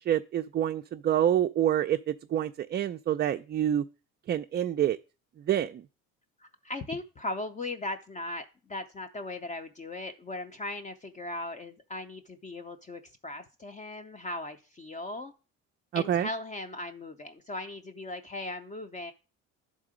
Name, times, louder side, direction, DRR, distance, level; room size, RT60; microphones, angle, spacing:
voice 1, 0.0-3.8 4.3-5.0 5.5-5.8 15.9-16.3, right 10 dB, 35° right, 0.4 m, -27 dB
voice 2, 6.4-15.3 15.9-19.1, left 2 dB, 25° left, 0.6 m, -38 dB
11.0 x 3.8 x 4.9 m
cardioid pair, 115°, 31 cm